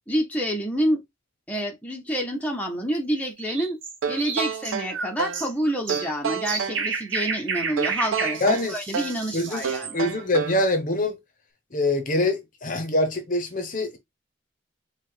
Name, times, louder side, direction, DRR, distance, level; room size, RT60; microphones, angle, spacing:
voice 1, 0.1-1.0 1.5-3.8 4.1-10.0, equal, 10° left, 0.9 m, -28 dB
sound 1, 3.4-10.0, right 5 dB, 70° right, 1.1 m, -31 dB
sound 2, 4.0-5.5 5.9-6.8 7.8-9.2 9.6-10.7, right 6 dB, 90° right, 0.5 m, -29 dB
voice 2, 8.4-8.7 9.3-9.6 9.9-11.2 11.7-14.0, left 2 dB, 40° left, 0.9 m, -24 dB
4.8 x 2.4 x 3.8 m
head